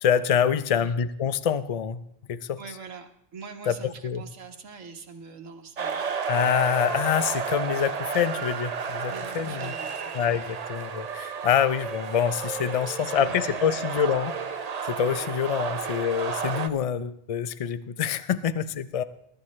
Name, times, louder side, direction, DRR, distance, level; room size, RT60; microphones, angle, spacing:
voice 1, 0.0-2.0 2.3-2.6 3.7-3.8 4.0-4.2 6.3-9.7 10.1-14.3 14.9-19.0, left 8 dB, 50° left, 14 dB, 0.4 m, -26 dB
voice 2, 2.6-6.1 9.1-10.3 13.0-13.9, right 5 dB, 75° right, 5 dB, 1.6 m, -43 dB
sound 1, 5.8-16.7, right 6 dB, 40° right, 0.6 m, -32 dB
22.0 x 12.5 x 3.2 m, 0.69 s
omnidirectional pair, 1.3 m